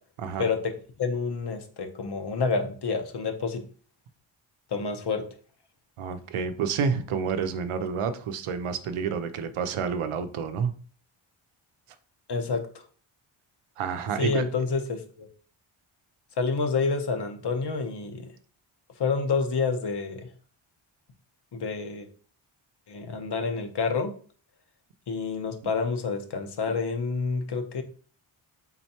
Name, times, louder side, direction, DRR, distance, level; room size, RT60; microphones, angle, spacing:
voice 1, 0.4-3.6 4.7-5.2 12.3-12.8 14.2-15.3 16.4-18.3 19.0-20.3 21.5-22.1 22.9-24.1 25.1-27.8, left 4 dB, 55° left, 6 dB, 0.8 m, -28 dB
voice 2, 6.0-10.7 13.8-14.5, right 6 dB, 80° right, 9 dB, 0.7 m, -29 dB
4.4 x 4.0 x 2.8 m, 0.42 s
wide cardioid pair, 125°, 50 cm